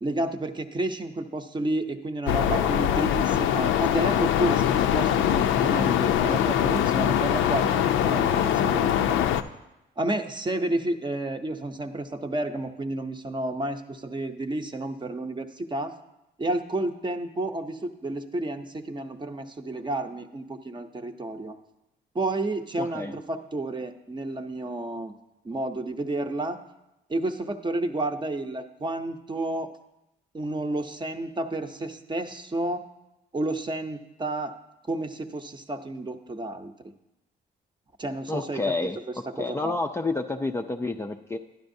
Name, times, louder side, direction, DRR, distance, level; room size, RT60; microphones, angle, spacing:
voice 1, 0.0-9.2 10.0-15.9 16.4-21.5 22.1-25.1 25.4-26.6 27.1-29.7 30.3-32.8 33.3-34.5 34.9-36.7 38.0-38.9 39.4-39.8, right 1 dB, 25° right, 7 dB, 0.7 m, -31 dB
sound 1, 2.3-9.4, left 10 dB, 80° left, 0.5 m, -23 dB
voice 2, 22.8-23.1 38.3-39.0 39.4-41.4, left 3 dB, 15° left, 3 dB, 0.4 m, -29 dB
12.0 x 10.5 x 2.7 m, 0.92 s
cardioid pair, 90°, 20 cm